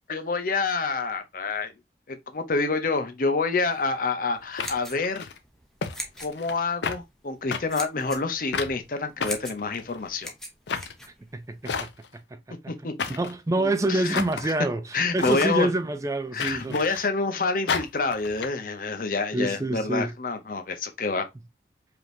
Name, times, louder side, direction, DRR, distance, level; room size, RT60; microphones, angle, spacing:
voice 1, 0.1-1.7 2.1-5.3 6.2-10.3 12.7-12.9 13.6-14.2 14.4-14.5 14.9-15.7 16.3-21.2, left 3 dB, 50° left, 0.7 m, -27 dB
sound 1, 3.6-3.8 4.6-5.4 5.8-5.9 6.2-6.6 6.8-7.0 7.5-7.6 8.5-8.7 9.2-10.1 10.7-10.9 11.6-12.2 13.0-13.4 14.1-14.5 15.2-15.5 16.4-17.1 17.7-18.5, left 5 dB, 85° left, 0.6 m, -31 dB
sound 2, 4.4-11.7, equal, 5° left, 0.7 m, -41 dB
voice 2, 11.3-11.9 13.1-16.7 19.3-20.1, right 2 dB, 20° right, 0.3 m, -26 dB
5.1 x 2.9 x 2.6 m
head